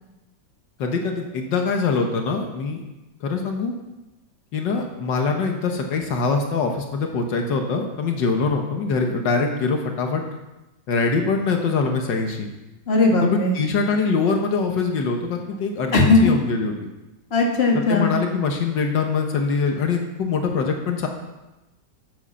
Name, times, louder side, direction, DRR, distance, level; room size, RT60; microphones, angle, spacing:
voice 1, 0.8-2.8 3.2-3.7 4.5-10.2 10.9-12.5 13.2-16.7 17.7-21.1, left 4 dB, 80° left, 3 dB, 1.8 m, -23 dB
voice 2, 12.9-13.6 15.9-16.3 17.3-18.1, left 3 dB, 35° left, -1 dB, 2.2 m, -18 dB
11.5 x 7.6 x 6.8 m, 1.0 s
omnidirectional pair, 1.9 m